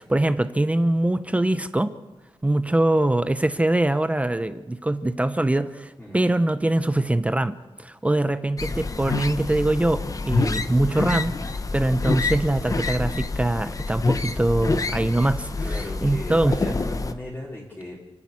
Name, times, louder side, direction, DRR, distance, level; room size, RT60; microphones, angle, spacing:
voice 1, 0.0-1.9 2.4-16.8, right 1 dB, 15° right, 11 dB, 0.7 m, -23 dB
sound 1, 8.6-17.1, left 3 dB, 35° left, 1.0 m, -27 dB
voice 2, 15.6-18.0, left 1 dB, 15° left, -5 dB, 4.0 m, -36 dB
29.5 x 10.5 x 8.6 m, 1.2 s
wide cardioid pair, 160°, 10 cm